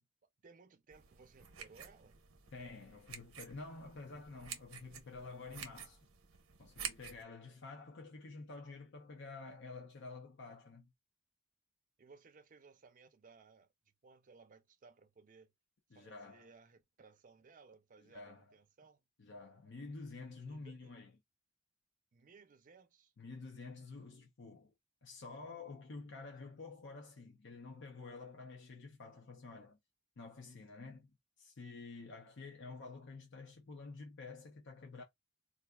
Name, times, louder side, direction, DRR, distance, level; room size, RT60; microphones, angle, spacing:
voice 1, 0.0-2.2 12.0-13.7 14.0-15.5 15.9-19.0 20.5-20.9 22.1-23.1, right 4 dB, 40° right, 0.5 m, -61 dB
sound 1, 0.9-7.2, right 7 dB, 90° right, 0.8 m, -50 dB
voice 2, 2.5-6.0 6.6-10.9 15.9-16.5 18.0-18.5 19.2-21.1 23.2-24.7 25.0-29.8 30.2-31.1 31.4-35.0, left 3 dB, 60° left, 0.7 m, -50 dB
4.1 x 2.5 x 2.3 m
head